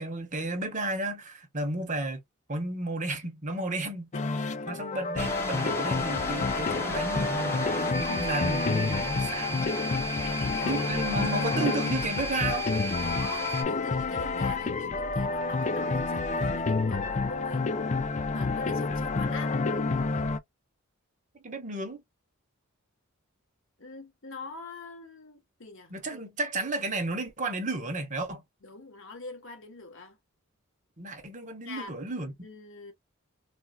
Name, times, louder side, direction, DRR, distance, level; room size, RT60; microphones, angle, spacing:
voice 1, 0.0-2.2 2.5-4.1 4.7-9.7 10.6-12.7 21.4-22.0 25.9-28.4 31.0-32.3, right 2 dB, 35° right, 1.0 m, -33 dB
sound 1, 4.1-20.4, left 3 dB, 35° left, 0.4 m, -29 dB
sound 2, 5.2-13.6, right 1 dB, 10° left, 0.8 m, -35 dB
voice 2, 10.2-11.0 13.0-17.7 18.3-19.7 23.8-25.9 28.6-30.2 31.6-32.0 32.4-32.9, left 3 dB, 60° left, 1.1 m, -43 dB
4.2 x 2.2 x 2.3 m
head